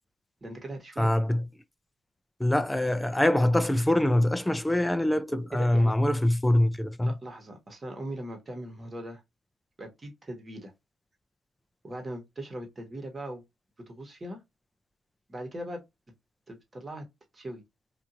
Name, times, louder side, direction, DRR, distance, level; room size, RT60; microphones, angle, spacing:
voice 1, 0.4-1.1 5.5-5.9 7.0-9.2 9.8-10.7 11.8-13.4 13.8-14.4 15.3-15.8 16.5-17.1 17.3-17.6, right 1 dB, 25° right, 1.1 m, -39 dB
voice 2, 1.0-1.4 2.4-7.1, left 1 dB, 10° left, 0.3 m, -24 dB
2.8 x 2.4 x 2.5 m
cardioid pair, 90°, 0 cm